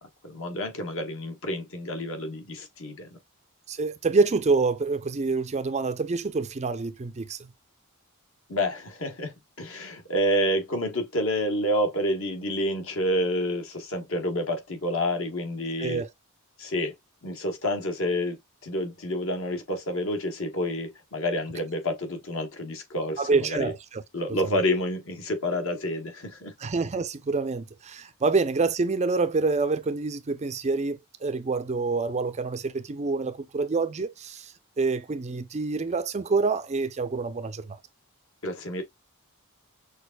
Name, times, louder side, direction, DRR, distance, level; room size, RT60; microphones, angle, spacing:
voice 1, 0.0-3.1 8.5-16.0 16.6-17.0 17.2-23.7 24.1-26.5 38.4-38.8, left 1 dB, 60° left, 1.3 m, -29 dB
voice 2, 3.7-7.5 15.8-16.1 23.2-23.7 26.6-37.8, right 4 dB, 30° right, 0.5 m, -27 dB
6.2 x 2.5 x 2.2 m
head